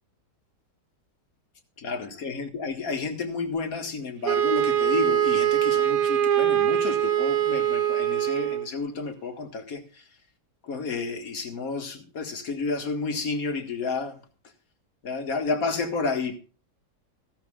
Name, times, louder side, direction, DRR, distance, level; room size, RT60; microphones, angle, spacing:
voice 1, 1.8-9.8 10.6-14.2 15.0-16.4, left 4 dB, 55° left, 2.1 m, -31 dB
Wind instrument woodwind instrument, 4.2-8.7, right 10 dB, 55° right, 1.4 m, -23 dB
16.0 x 12.5 x 2.4 m
omnidirectional pair, 1.8 m